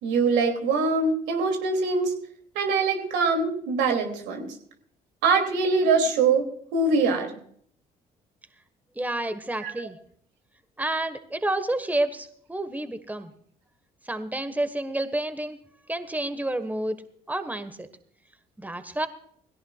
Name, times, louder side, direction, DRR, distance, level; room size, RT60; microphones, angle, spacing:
voice 1, 0.0-2.1 2.5-4.5 5.2-6.5 6.7-7.3 9.6-9.7, right 4 dB, 75° right, 4 dB, 2.9 m, -23 dB
voice 2, 8.9-10.0 10.8-13.3 14.1-15.6 15.9-17.0 17.3-17.9 18.6-19.1, right 1 dB, 10° right, 11 dB, 1.5 m, -29 dB
21.0 x 16.5 x 2.4 m, 0.62 s
hypercardioid pair, 50°, 19 cm